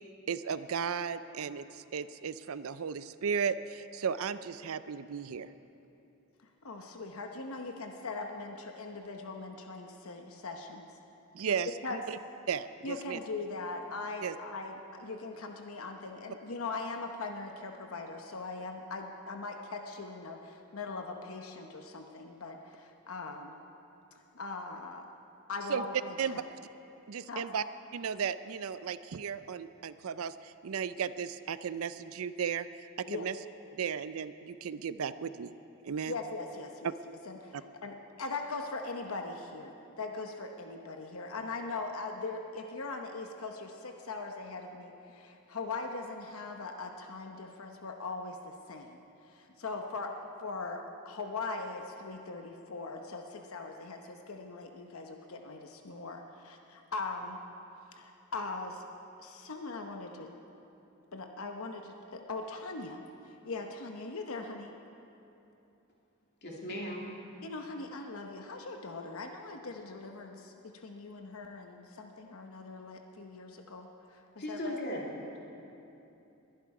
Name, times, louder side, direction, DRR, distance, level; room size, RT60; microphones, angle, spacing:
voice 1, 0.3-5.5 11.3-12.2 12.5-13.2 14.2-14.3 25.7-25.8 26.2-26.4 27.1-27.6 27.9-33.3 33.8-35.5 35.8-36.1, right 7 dB, 75° right, 14 dB, 0.5 m, -35 dB
voice 2, 6.6-10.9 11.8-12.0 12.8-23.6 24.3-25.1 25.5-26.4 27.3-27.4 33.1-33.3 36.0-36.9 37.2-49.0 49.3-57.4 57.9-58.8 59.2-60.3 61.1-64.7 67.4-74.2 74.5-74.7, left 3 dB, 75° left, 4 dB, 0.9 m, -40 dB
voice 3, 66.4-67.1 74.4-75.4, equal, 50° left, -3 dB, 2.7 m, -37 dB
21.0 x 11.5 x 4.8 m, 2.9 s
head